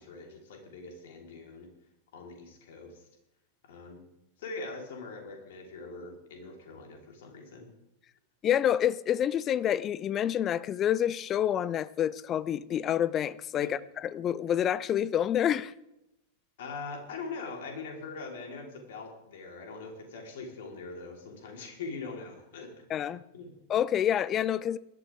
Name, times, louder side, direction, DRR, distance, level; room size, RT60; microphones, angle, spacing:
voice 1, 0.0-1.7 2.1-3.0 3.6-4.0 4.4-7.7 13.6-13.7 16.6-22.8 23.3-23.5, left 4 dB, 55° left, 3.8 m, -42 dB
voice 2, 8.4-13.8 14.1-15.7 22.9-23.2 23.7-24.8, left 10 dB, 30° left, 0.6 m, -28 dB
20.0 x 12.5 x 3.6 m
figure-of-eight pair, 90°, 0 cm